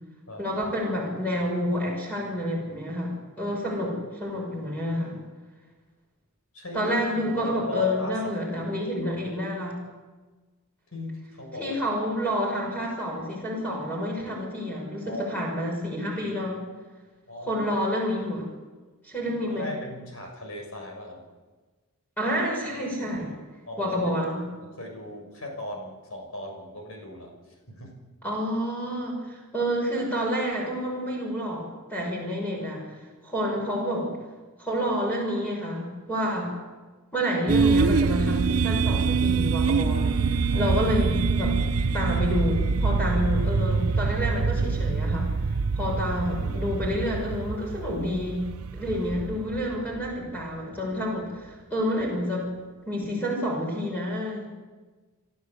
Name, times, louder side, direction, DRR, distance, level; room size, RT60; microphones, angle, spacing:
voice 1, 0.4-5.1 6.7-9.8 11.6-16.6 17.4-18.4 19.0-19.7 22.2-23.3 23.8-24.4 28.2-32.9 33.2-34.1 34.6-36.5 37.1-41.6 41.9-45.3 45.7-48.5 48.7-52.5 52.9-54.5, equal, 5° left, -3 dB, 6.3 m, -29 dB
voice 2, 6.5-6.9 7.3-8.4 10.9-11.8 15.0-15.3 17.3-17.6 19.5-21.2 23.7-24.1 24.6-27.3 27.7-27.9 40.5-40.7, left 1 dB, 75° left, 2 dB, 6.4 m, -37 dB
sound 1, 37.5-50.4, right 4 dB, 85° right, 0.7 m, -25 dB
29.0 x 13.0 x 8.2 m, 1.3 s
head